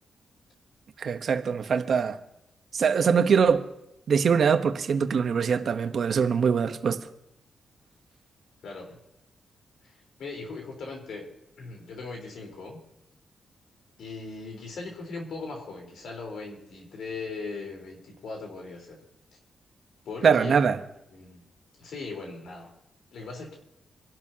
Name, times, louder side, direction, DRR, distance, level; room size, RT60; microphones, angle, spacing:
voice 1, 1.0-2.2 2.7-3.7 4.1-7.1 20.2-20.8, right 6 dB, 55° right, 0.9 m, -23 dB
voice 2, 8.6-9.0 9.8-11.3 11.6-12.8 14.0-19.0 20.1-20.5 21.1-21.4 21.8-22.7 23.1-23.6, left 3 dB, 80° left, 3.9 m, -39 dB
25.5 x 12.0 x 2.8 m
wide cardioid pair, 145°, 0 cm